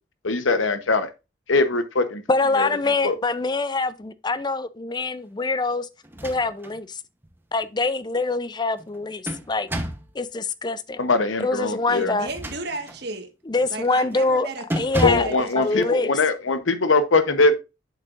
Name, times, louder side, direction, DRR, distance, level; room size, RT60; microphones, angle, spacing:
voice 1, 0.2-1.1 1.5-2.2 2.6-2.7 3.0-3.2 11.0-12.1 15.0-17.6, left 3 dB, 75° left, 0.9 m, -21 dB
voice 2, 2.3-5.9 6.2-7.0 7.5-9.7 10.1-11.0 11.4-12.3 13.5-14.5 14.8-15.3 15.6-16.1, left 3 dB, 20° left, 0.4 m, -24 dB
sound 1, 6.0-6.8 7.2-7.3 8.8-10.1 12.1-13.1 13.5-13.8 14.1-14.3 14.7-15.4, equal, 10° right, 0.9 m, -30 dB
voice 3, 11.9-13.3 13.7-16.1, right 2 dB, 55° right, 1.6 m, -35 dB
8.2 x 7.4 x 2.5 m
head